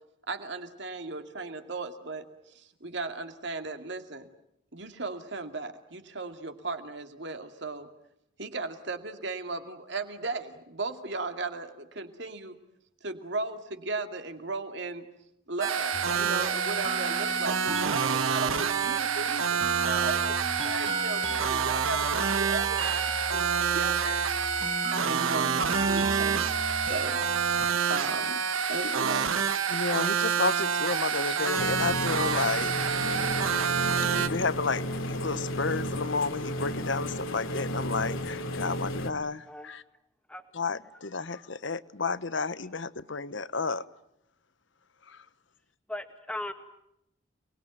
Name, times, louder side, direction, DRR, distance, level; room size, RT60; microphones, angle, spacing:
voice 1, 0.3-4.3 4.7-7.9 8.4-12.6 13.0-15.1 15.5-24.2 25.0-28.4 28.7-29.4 29.9-30.0, right 3 dB, 60° right, 2.4 m, -36 dB
sound 1, 15.6-34.3, right 6 dB, 85° right, 1.4 m, -27 dB
sound 2, 15.9-27.7, right 3 dB, 25° right, 1.2 m, -37 dB
voice 2, 29.7-32.7 34.1-39.8 40.5-43.8 45.1-45.2, left 4 dB, 65° left, 1.0 m, -31 dB
sound 3, 31.6-39.1, equal, 85° left, 2.8 m, -33 dB
voice 3, 45.9-46.5, left 1 dB, 5° left, 2.0 m, -38 dB
29.0 x 21.0 x 9.2 m
head